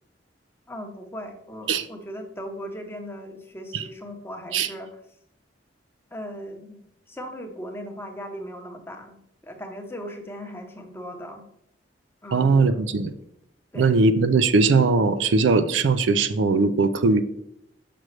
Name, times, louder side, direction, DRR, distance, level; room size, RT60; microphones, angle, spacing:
voice 1, 0.7-5.0 6.1-6.8 7.1-11.5 12.2-12.8 13.7-13.9, equal, 10° left, 3 dB, 0.8 m, -38 dB
voice 2, 12.3-13.1 13.8-17.2, right 4 dB, 80° right, 11 dB, 0.4 m, -20 dB
6.3 x 6.0 x 3.2 m, 0.75 s
head